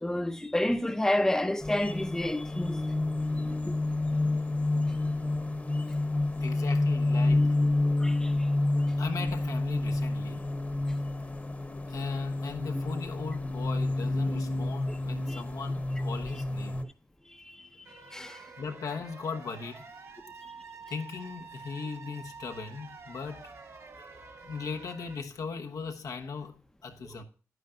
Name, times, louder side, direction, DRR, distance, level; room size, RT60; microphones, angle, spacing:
voice 1, 0.0-2.8 3.7-3.8 8.0-8.1 15.3-15.4 18.1-18.3, left 1 dB, 10° left, 0.7 m, -29 dB
sound 1, 1.6-16.8, left 2 dB, 25° left, 1.1 m, -29 dB
voice 2, 6.4-7.6 9.0-10.4 11.9-16.8 18.6-19.9 20.9-24.1 24.4-27.2, left 5 dB, 85° left, 1.1 m, -38 dB
sound 2, 17.8-25.2, right 4 dB, 60° right, 1.9 m, -48 dB
10.5 x 9.4 x 2.5 m
cardioid pair, 85°, 6 cm